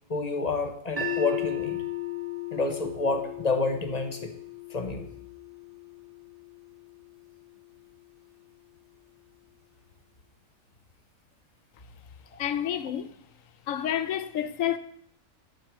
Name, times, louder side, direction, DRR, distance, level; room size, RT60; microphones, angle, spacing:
voice 1, 0.1-1.8 2.5-4.3 4.7-5.1 12.3-12.4, left 3 dB, 35° left, 0.8 m, -29 dB
sound 1, 1.0-7.1, left 9 dB, 30° right, 1.0 m, -36 dB
voice 2, 12.4-13.1 13.7-14.8, left 10 dB, 70° left, 0.9 m, -29 dB
10.0 x 4.5 x 6.1 m
omnidirectional pair, 1.5 m